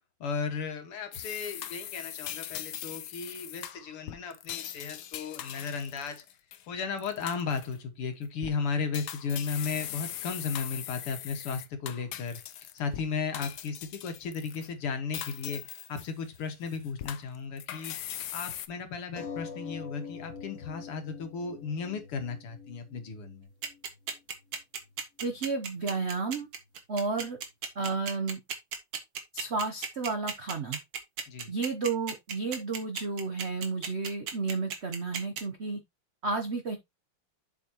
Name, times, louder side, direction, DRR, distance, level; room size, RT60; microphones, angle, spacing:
voice 1, 0.2-6.2 6.7-12.4 12.7-15.6 15.9-17.9 18.3-23.5 31.3-31.5, left 5 dB, 85° left, 2.5 m, -35 dB
sound 1, 1.1-6.6 7.0-7.8 8.2-8.5 8.9-13.0 13.3-14.7 15.1-16.4 16.7-18.7, left 11 dB, 65° left, 1.0 m, -40 dB
sound 2, 19.2-24.2 24.9-25.0 25.3-25.4, left 5 dB, 45° left, 1.1 m, -44 dB
sound 3, 23.6-35.4, right 7 dB, 85° right, 2.5 m, -35 dB
voice 2, 25.2-26.5 26.9-27.4 27.8-28.4 29.3-30.8 31.5-35.8 36.2-36.8, right 4 dB, 70° right, 0.6 m, -32 dB
7.5 x 7.4 x 2.9 m
omnidirectional pair, 2.4 m